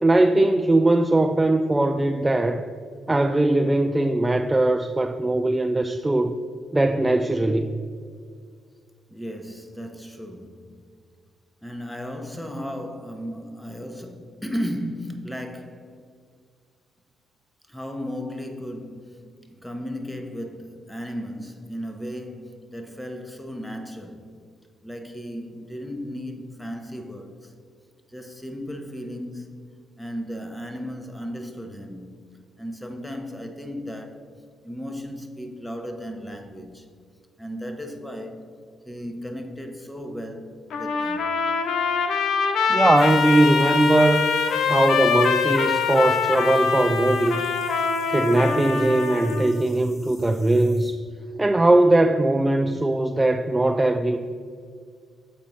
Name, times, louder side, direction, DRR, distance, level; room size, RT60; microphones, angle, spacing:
voice 1, 0.0-2.7 3.1-6.3 6.7-7.7 42.7-44.3 44.7-47.4 48.1-51.0 51.4-54.2, right 2 dB, 15° right, 0.3 m, -20 dB
voice 2, 9.1-10.9 11.6-15.9 17.7-24.3 24.8-27.5 28.1-29.6 30.0-32.2 32.6-34.3 34.6-36.9 37.4-38.5 38.8-41.3, equal, 5° left, 0.9 m, -35 dB
Trumpet, 40.7-49.5, left 5 dB, 70° left, 0.7 m, -24 dB
sound 1, 43.0-50.9, left 2 dB, 55° left, 2.0 m, -49 dB
7.4 x 4.3 x 5.4 m
cardioid pair, 90°, 0 cm